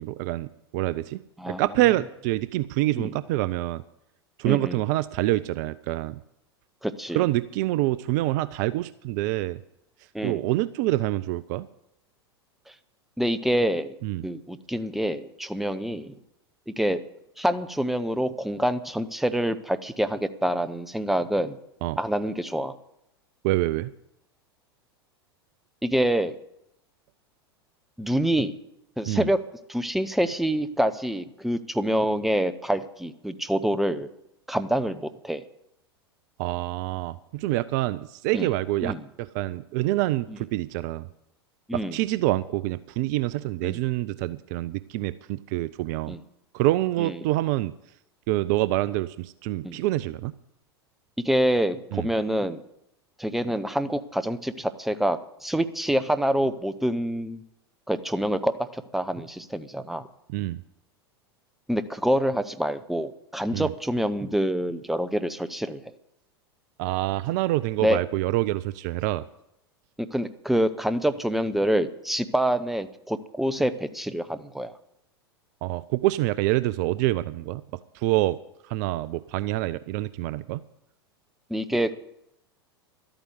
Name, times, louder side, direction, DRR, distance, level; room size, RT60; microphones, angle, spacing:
voice 1, 0.0-1.2 1.5-3.8 4.4-6.2 7.1-9.6 10.2-11.7 14.0-14.2 21.8-22.0 23.4-23.9 29.1-29.3 36.4-41.1 41.7-46.2 46.5-47.7 48.3-50.4 51.9-52.1 60.3-60.6 63.5-63.7 66.8-69.2 75.6-77.6 77.9-78.4 78.7-80.6, right 17 dB, 45° right, 17 dB, 0.4 m, -26 dB
voice 2, 4.4-4.8 6.8-7.3 10.1-10.4 13.2-13.9 14.2-16.2 16.7-17.0 17.4-21.6 22.0-22.7 25.8-26.4 28.0-28.6 29.0-29.4 29.7-34.1 34.5-35.4 38.3-38.5 38.8-39.0 41.7-42.0 43.6-43.8 46.1-46.2 47.0-47.1 49.6-49.8 51.2-52.6 53.2-57.4 57.9-60.0 61.7-65.8 67.8-68.0 70.1-74.7 81.5-81.9, equal, ahead, 12 dB, 0.8 m, -26 dB
12.5 x 8.9 x 8.1 m, 0.81 s
figure-of-eight pair, 85°, 13 cm